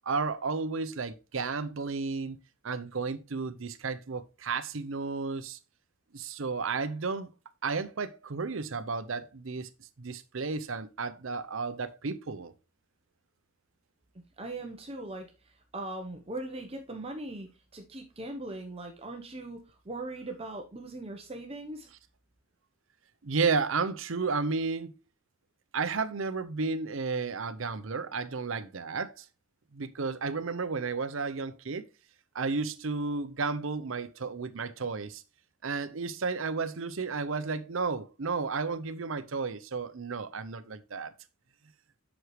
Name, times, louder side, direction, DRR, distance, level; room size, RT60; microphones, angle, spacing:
voice 1, 0.0-2.4 2.6-5.6 6.1-7.3 7.6-9.7 10.0-12.5 23.2-25.0 25.7-29.3 29.7-31.8 32.3-35.2 35.6-41.1, right 4 dB, 70° right, 0.7 m, -32 dB
voice 2, 14.4-15.3 15.7-21.9, right 2 dB, 30° right, 0.9 m, -40 dB
7.9 x 6.3 x 3.2 m
head